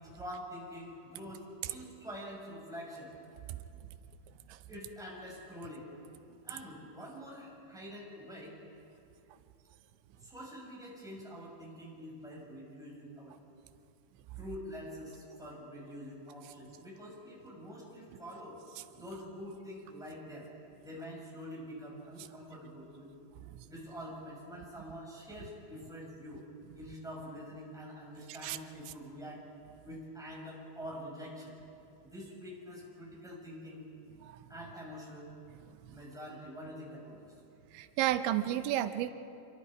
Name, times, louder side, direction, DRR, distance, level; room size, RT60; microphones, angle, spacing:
voice 1, 0.1-3.1 4.7-5.9 6.4-8.6 10.2-13.4 14.4-18.6 18.9-20.5 20.8-23.1 23.6-26.4 26.7-29.5 29.8-31.6 32.0-33.8 34.5-35.3 35.9-37.3, equal, ahead, -4 dB, 5.3 m, -46 dB
voice 2, 37.7-39.1, right 13 dB, 90° right, 10 dB, 3.1 m, -32 dB
28.0 x 24.0 x 4.9 m, 2.7 s
omnidirectional pair, 5.2 m